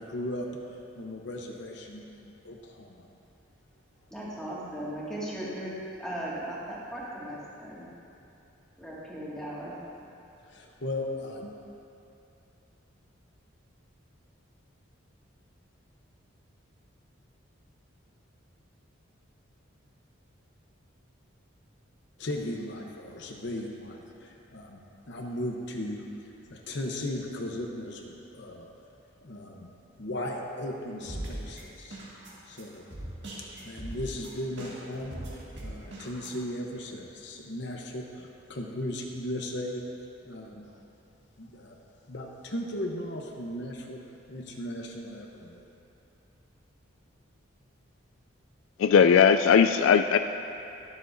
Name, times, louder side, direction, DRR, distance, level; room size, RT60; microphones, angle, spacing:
voice 1, 0.0-3.1 10.5-11.5 22.2-24.8 25.1-26.0 26.5-28.7 29.2-29.7 30.0-32.0 32.5-32.8 33.4-35.2 35.6-39.8 40.2-40.6 41.4-41.8 42.1-44.0 44.3-45.6, left 1 dB, 55° left, 0 dB, 0.9 m, -37 dB
voice 2, 4.1-5.7 6.0-7.9 8.8-9.7, right 1 dB, 5° left, -9 dB, 2.0 m, -37 dB
sound 1, 31.0-36.3, right 1 dB, 55° right, 1.9 m, -40 dB
voice 3, 48.8-50.2, left 7 dB, 75° left, 8 dB, 0.3 m, -19 dB
21.5 x 7.3 x 2.6 m, 2.7 s
head